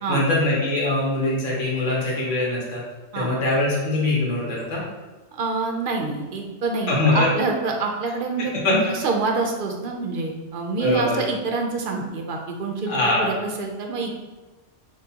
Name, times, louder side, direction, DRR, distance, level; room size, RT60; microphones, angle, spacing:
voice 1, 0.1-2.8 3.1-4.8 6.9-7.3 8.6-8.7 10.8-11.2 12.9-13.3, left 2 dB, 80° left, -4 dB, 1.4 m, -22 dB
voice 2, 5.4-14.1, right 3 dB, 60° right, 1 dB, 0.6 m, -26 dB
6.4 x 2.2 x 2.7 m, 1.2 s
omnidirectional pair, 1.2 m